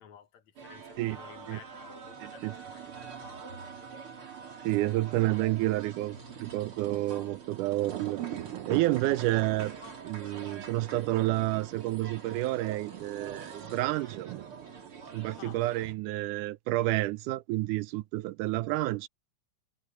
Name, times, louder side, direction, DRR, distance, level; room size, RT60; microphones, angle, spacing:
voice 1, 0.0-3.5 15.4-15.6, left 9 dB, 70° left, 2.5 m, -53 dB
sound 1, 0.6-15.9, right 6 dB, 45° right, 3.7 m, -45 dB
voice 2, 2.2-2.5 4.6-8.2 8.7-9.7 10.0-14.3 15.1-19.1, right 17 dB, 85° right, 2.2 m, -30 dB
Thunder, 6.3-15.8, right 11 dB, 70° right, 1.4 m, -44 dB
omnidirectional pair, 3.5 m